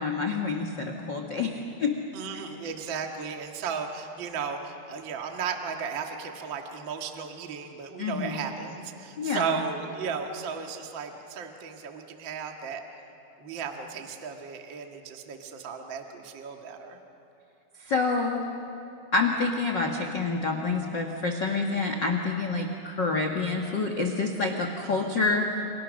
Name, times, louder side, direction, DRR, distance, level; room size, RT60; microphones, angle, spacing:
voice 1, 0.0-1.5 1.8-1.9 8.0-8.4 9.2-9.6 17.8-18.4 19.1-25.5, left 4 dB, 85° left, 3 dB, 1.0 m, -27 dB
voice 2, 2.1-12.8 13.4-17.0 24.8-25.1, right 6 dB, 50° right, 3 dB, 1.4 m, -35 dB
30.0 x 29.5 x 6.5 m, 2.7 s
omnidirectional pair, 5.0 m